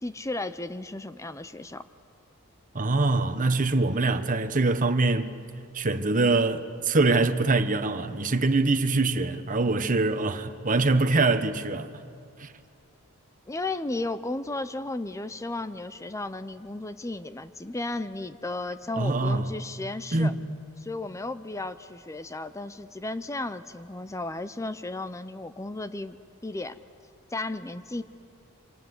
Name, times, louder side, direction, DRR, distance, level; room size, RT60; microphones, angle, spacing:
voice 1, 0.0-1.8 13.5-20.3 20.8-26.2 26.4-26.8 27.3-28.0, left 2 dB, 15° left, 0.6 m, -34 dB
voice 2, 2.7-5.4 5.7-11.9 12.4-12.5 19.0-19.5 20.1-20.4, right 3 dB, 40° right, 1.1 m, -24 dB
26.5 x 26.0 x 8.2 m
head